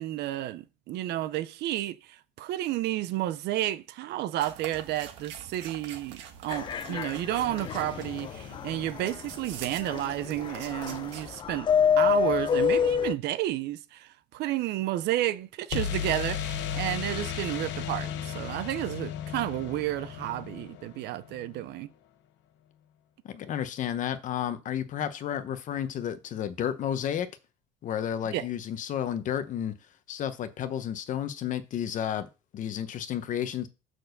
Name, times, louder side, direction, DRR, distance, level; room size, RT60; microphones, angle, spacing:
voice 1, 0.0-11.7 12.0-21.9 28.3-28.5, right 14 dB, 60° right, 0.6 m, -31 dB
sound 1, 4.4-11.4, right 9 dB, 80° right, 1.3 m, -45 dB
sound 2, 6.5-9.1 9.8-13.1, left 8 dB, 25° left, 0.3 m, -27 dB
sound 3, 7.6-9.6 15.7-21.5, left 9 dB, 75° left, 1.1 m, -36 dB
voice 2, 23.2-27.3 27.8-29.7 30.1-32.3 32.5-33.7, left 9 dB, 40° left, 0.9 m, -32 dB
6.2 x 4.6 x 6.6 m
cardioid pair, 160°, 19 cm